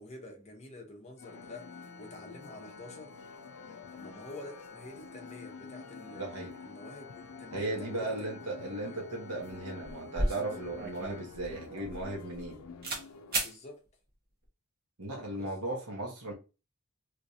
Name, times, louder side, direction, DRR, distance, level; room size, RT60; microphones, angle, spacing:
voice 1, 0.0-3.2 3.9-6.2 6.6-8.3 8.8-9.0 13.4-13.8 15.4-15.5, left 2 dB, 30° left, 0.9 m, -48 dB
sound 1, 1.2-13.4, left 5 dB, 80° left, 0.4 m, -49 dB
Organ, 1.2-12.0, left 4 dB, 50° left, 1.1 m, -53 dB
voice 2, 6.1-6.5 7.5-12.6 15.0-16.3, right 2 dB, 85° right, 1.2 m, -36 dB
sound 2, 9.8-12.5 12.8-13.0 13.3-13.5, right 1 dB, 45° right, 1.3 m, -34 dB
3.2 x 3.1 x 2.7 m
head